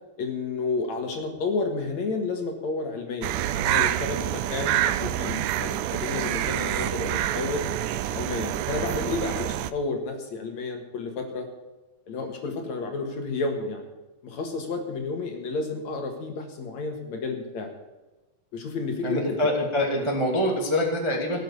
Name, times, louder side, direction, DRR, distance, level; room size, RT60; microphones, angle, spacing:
voice 1, 0.2-7.6 8.1-11.5 12.1-13.9 14.2-17.7 18.5-19.4 19.9-20.0, left 3 dB, 55° left, 3 dB, 2.7 m, -31 dB
sound 1, 3.2-9.7, right 13 dB, 90° right, 1.8 m, -27 dB
voice 2, 19.0-21.4, left 1 dB, 15° right, 0 dB, 1.1 m, -25 dB
17.5 x 8.1 x 6.9 m, 1.1 s
omnidirectional pair, 4.3 m